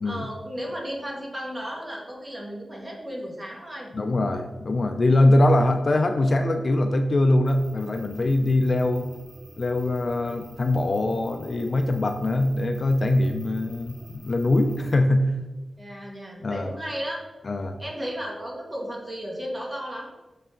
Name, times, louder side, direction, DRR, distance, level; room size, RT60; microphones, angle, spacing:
voice 1, 0.0-3.9 15.8-17.2 17.8-20.1, equal, 20° right, -2 dB, 1.7 m, -34 dB
voice 2, 3.9-9.1 9.6-15.3 16.4-16.7 17.4-17.8, left 1 dB, 40° left, 6 dB, 0.5 m, -22 dB
sound 1, 7.4-14.9, right 1 dB, 75° right, 1.9 m, -48 dB
6.8 x 5.4 x 3.8 m, 1.1 s
wide cardioid pair, 130°, 0 cm